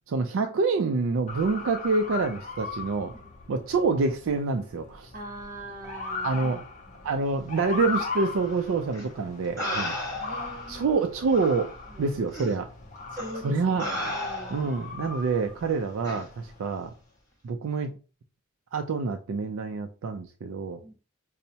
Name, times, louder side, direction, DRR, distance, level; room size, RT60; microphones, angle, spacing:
voice 1, 0.1-3.1 3.5-5.1 6.2-6.6 7.0-10.0 10.7-11.7 12.0-12.7 13.4-13.9 14.5-16.9 17.4-17.9 18.7-20.8, right 4 dB, 70° right, 0.4 m, -27 dB
Motor vehicle (road) / Siren, 1.3-16.8, left 4 dB, 35° left, 0.5 m, -39 dB
voice 2, 5.1-6.5 6.9-7.1 10.1-10.9 11.9-12.1 13.1-14.6 20.8-20.9, right 1 dB, 40° right, 0.7 m, -42 dB
sound 1, 8.9-9.0 9.6-10.5 11.4-11.5 12.3-12.5 13.2-13.4 13.8-14.8 16.0-16.2, left 1 dB, 15° left, 1.2 m, -33 dB
5.4 x 2.0 x 2.7 m
head